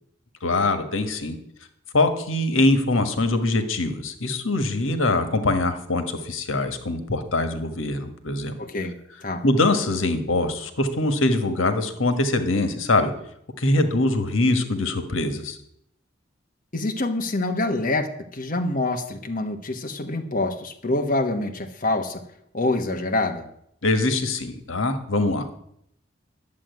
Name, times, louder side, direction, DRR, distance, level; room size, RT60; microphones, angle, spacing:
voice 1, 0.4-1.4 1.9-8.6 9.4-13.1 13.6-15.6 23.8-25.6, left 2 dB, 90° left, 8 dB, 1.6 m, -23 dB
voice 2, 8.6-9.4 16.7-22.2 22.5-23.5, left 2 dB, 40° left, 4 dB, 1.2 m, -26 dB
11.0 x 7.6 x 9.5 m, 0.74 s
head